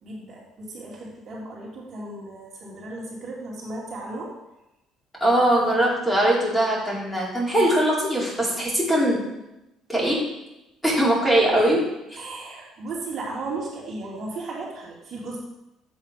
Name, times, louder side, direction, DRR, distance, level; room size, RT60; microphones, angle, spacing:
voice 1, 0.0-4.3 11.4-11.7 12.2-15.4, right 2 dB, 55° right, -4 dB, 2.3 m, -35 dB
voice 2, 5.2-9.3 9.9-10.2 10.8-11.8, right 1 dB, 5° left, -5 dB, 2.4 m, -21 dB
7.8 x 3.7 x 4.9 m, 0.90 s
cardioid pair, 95°, 0 cm